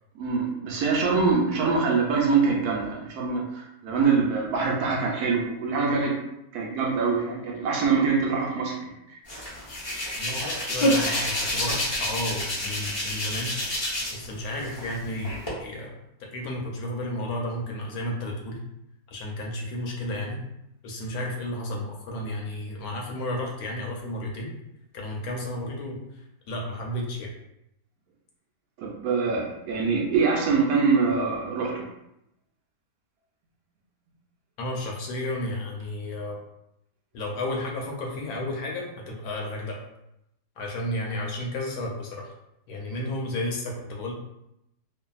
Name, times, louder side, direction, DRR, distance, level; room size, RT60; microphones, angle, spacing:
voice 1, 0.2-6.1 6.5-8.8 28.8-31.8, right 5 dB, 70° right, -1 dB, 1.0 m, -24 dB
Hands, 9.3-14.3 14.6-15.5, left 1 dB, 30° left, 0.5 m, -28 dB
voice 2, 10.1-13.5 14.1-15.9 16.2-18.6 19.1-20.4 20.8-24.5 24.9-26.0 26.5-27.3 34.6-36.4 37.1-39.8 40.6-42.3 42.7-44.1, left 1 dB, 70° left, -1 dB, 1.0 m, -32 dB
2.7 x 2.5 x 2.3 m, 0.84 s
omnidirectional pair, 1.7 m